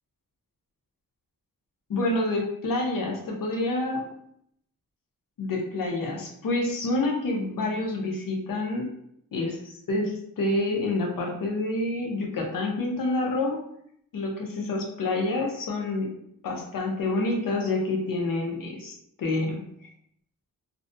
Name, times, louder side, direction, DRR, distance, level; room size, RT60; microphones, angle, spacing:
voice 1, 1.9-4.1 5.4-8.9 9.3-13.6 14.1-16.1 16.4-19.6, left 2 dB, 70° left, 0 dB, 0.7 m, -28 dB
2.5 x 2.1 x 2.5 m, 0.71 s
wide cardioid pair, 115°, 34 cm